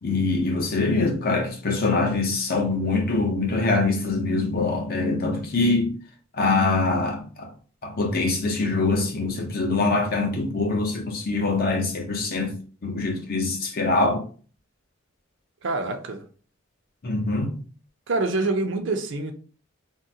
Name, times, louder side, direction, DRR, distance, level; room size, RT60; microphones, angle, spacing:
voice 1, 0.0-5.9 6.4-7.5 7.8-12.6 12.8-14.2 17.0-17.6, left 3 dB, 50° left, 0.7 m, -24 dB
voice 2, 15.6-16.2 18.1-19.3, right 3 dB, 65° right, 0.5 m, -26 dB
3.6 x 2.1 x 2.7 m
head